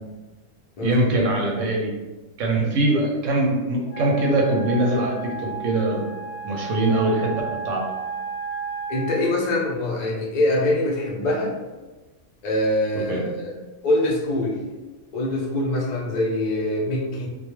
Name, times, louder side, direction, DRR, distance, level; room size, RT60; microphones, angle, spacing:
voice 1, 0.8-1.9 2.4-6.1 6.4-7.3 7.6-7.8 13.1-13.3, right 2 dB, 70° right, -1 dB, 0.9 m, -22 dB
Wind instrument woodwind instrument, 3.9-9.3, right 4 dB, 80° left, 1.0 m, -33 dB
voice 2, 8.9-11.5 12.4-13.3 13.8-14.6 15.1-17.3, left 1 dB, 60° left, -3 dB, 0.4 m, -23 dB
2.3 x 2.2 x 3.0 m, 1.2 s
omnidirectional pair, 1.5 m